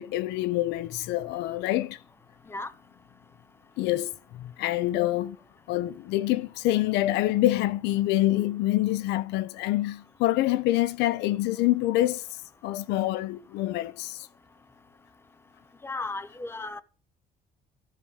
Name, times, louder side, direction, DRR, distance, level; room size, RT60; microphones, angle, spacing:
voice 1, 0.0-2.0 3.8-5.4 5.7-12.2 12.6-14.3, left 15 dB, 85° left, 0.5 m, -26 dB
voice 2, 15.8-16.8, left 3 dB, 15° left, 0.7 m, -35 dB
14.0 x 5.0 x 5.6 m
cardioid pair, 110°, 17 cm